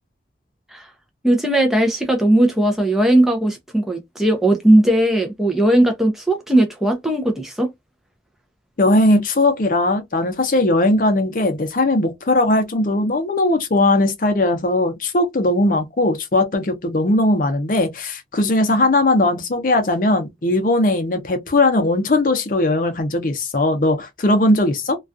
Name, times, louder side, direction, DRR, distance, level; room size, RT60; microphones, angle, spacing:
voice 1, 1.2-7.7, right 1 dB, ahead, 0.4 m, -17 dB
voice 2, 8.8-25.0, left 2 dB, 50° left, 0.6 m, -18 dB
2.3 x 2.3 x 2.5 m
head